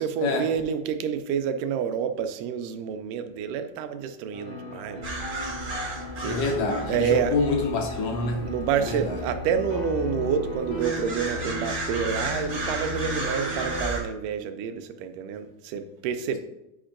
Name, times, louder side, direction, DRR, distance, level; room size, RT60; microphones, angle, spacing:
voice 1, 0.0-5.1 6.2-6.6 6.9-7.4 8.4-16.4, right 7 dB, 85° right, 9 dB, 2.1 m, -28 dB
sound 1, 4.3-13.9, left 1 dB, 40° left, 0.7 m, -37 dB
sound 2, 5.0-14.0, right 1 dB, 55° right, 0.7 m, -34 dB
voice 2, 6.2-8.5 8.8-9.2, left 3 dB, 75° left, 2 dB, 1.5 m, -26 dB
8.8 x 5.1 x 2.5 m, 0.90 s
omnidirectional pair, 3.6 m